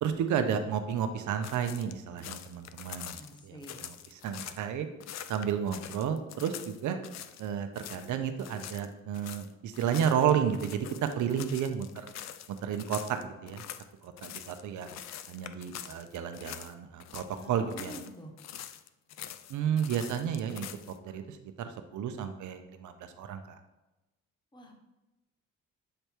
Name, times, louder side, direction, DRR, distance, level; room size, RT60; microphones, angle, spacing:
voice 1, 0.0-4.9 5.3-7.0 7.4-12.1 12.5-13.6 14.0-14.9 15.3-17.9 19.5-23.6, right 8 dB, 75° right, 8 dB, 0.8 m, -32 dB
sound 1, 1.4-4.6 5.0-7.5 7.7-8.1 8.4-16.7 17.0-18.1 18.4-21.0, left 10 dB, 60° left, 0.5 m, -45 dB
voice 2, 3.1-3.9 5.7-5.8 17.3-18.3 24.5-24.8, equal, 15° left, 2 dB, 1.2 m, -47 dB
7.7 x 3.4 x 4.5 m, 1.0 s
cardioid pair, 90°, 30 cm